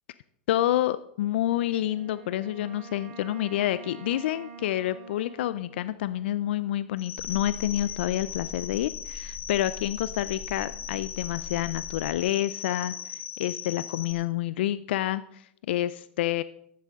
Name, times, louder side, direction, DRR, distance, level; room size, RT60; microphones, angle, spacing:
voice 1, 0.5-16.4, left 13 dB, 70° left, 15 dB, 0.5 m, -28 dB
Wind instrument woodwind instrument, 1.4-6.9, right 5 dB, 75° right, 2.7 m, -47 dB
sound 1, 7.0-14.1, left 8 dB, 40° left, 2.2 m, -39 dB
sound 2, 7.2-12.2, left 5 dB, 25° left, 2.3 m, -43 dB
14.5 x 11.5 x 3.7 m, 0.72 s
hypercardioid pair, 100°, 6 cm